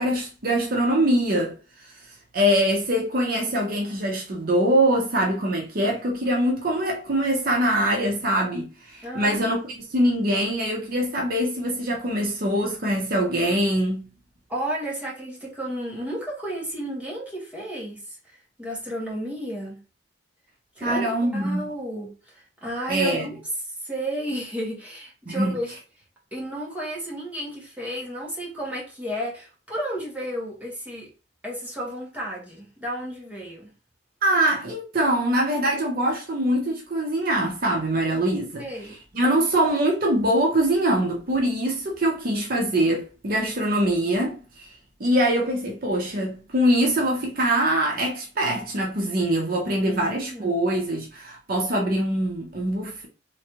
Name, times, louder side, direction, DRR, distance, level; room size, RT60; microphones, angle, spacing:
voice 1, 0.0-1.5 2.3-14.1 20.8-21.7 22.9-23.3 25.3-25.6 34.2-38.6 39.1-44.7 45.0-53.1, right 1 dB, 50° right, 0.7 m, -23 dB
voice 2, 9.0-9.4 14.5-19.8 20.8-23.4 23.8-25.7 26.3-31.1 31.4-33.7 38.6-39.0 49.8-50.5, right 1 dB, 10° right, 1.4 m, -33 dB
3.3 x 3.1 x 3.0 m
head